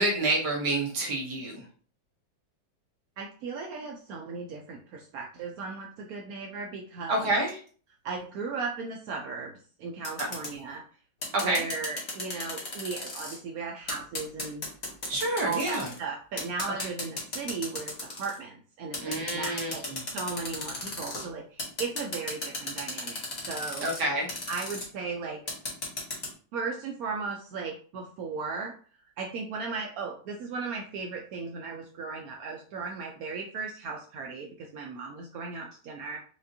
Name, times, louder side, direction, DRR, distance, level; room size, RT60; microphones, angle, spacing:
voice 1, 0.0-1.6 7.1-7.6 10.2-10.3 11.3-11.6 15.0-15.9 16.8-16.9 19.0-20.0 23.8-24.3, right 2 dB, 65° right, -1 dB, 1.5 m, -28 dB
voice 2, 3.2-7.3 8.0-9.5 9.8-10.8 11.4-14.6 15.4-19.8 20.1-23.8 24.5-25.4 26.5-28.8 29.2-36.2, right 4 dB, 80° right, 1 dB, 0.8 m, -36 dB
sound 1, 10.0-10.5 11.2-13.4 13.9-16.0 16.4-18.4 18.9-21.2 21.6-24.0 24.3-24.8 25.5-26.3, left 2 dB, 40° left, 1.2 m, -35 dB
5.1 x 2.4 x 2.6 m, 0.42 s
omnidirectional pair, 2.1 m